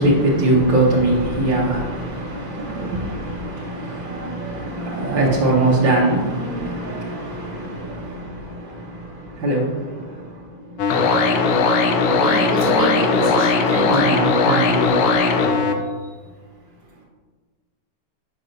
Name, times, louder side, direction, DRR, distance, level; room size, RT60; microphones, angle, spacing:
voice 1, 0.0-11.0 13.8-14.9, right 2 dB, 75° right, -8 dB, 2.0 m, -22 dB
sound 1, 10.8-15.7, left 4 dB, 85° left, 1.4 m, -18 dB
voice 2, 12.2-14.1 16.0-16.1, right 1 dB, 60° right, -5 dB, 2.4 m, -26 dB
8.2 x 6.0 x 2.6 m, 1.4 s
omnidirectional pair, 2.1 m